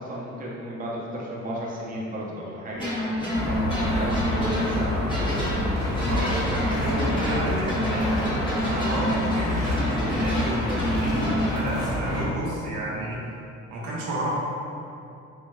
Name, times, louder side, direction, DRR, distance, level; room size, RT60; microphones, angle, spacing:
voice 1, 0.0-5.3, right 1 dB, 30° right, -5 dB, 0.6 m, -34 dB
sound 1, 2.7-11.5, equal, 15° left, 0.8 m, -28 dB
sound 2, 3.3-12.3, left 1 dB, 50° left, 0.8 m, -28 dB
voice 2, 5.9-8.1 8.5-13.2 13.7-14.3, right 1 dB, 90° right, -5 dB, 0.7 m, -31 dB
4.4 x 2.0 x 2.2 m, 2.6 s
cardioid pair, 90°, 30 cm